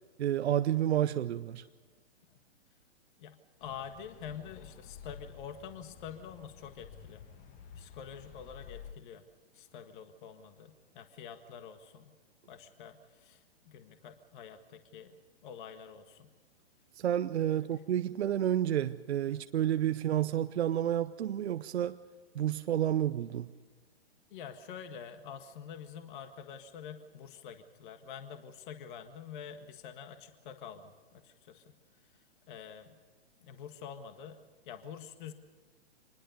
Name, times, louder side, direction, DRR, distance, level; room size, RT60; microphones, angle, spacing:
voice 1, 0.2-1.6 16.9-22.0 22.3-23.5, right 11 dB, 65° right, 11 dB, 0.8 m, -30 dB
voice 2, 3.2-7.2 7.7-9.2 9.5-12.1 12.5-15.1 15.4-16.3 17.6-17.8 19.3-19.4 24.3-31.6 32.5-33.0 33.4-34.4 34.6-35.3, left 7 dB, 45° left, 7 dB, 1.7 m, -47 dB
sound 1, 3.6-8.9, left 7 dB, 25° left, 1.7 m, -51 dB
25.5 x 21.0 x 5.3 m, 1.4 s
hypercardioid pair, 135°, 35 cm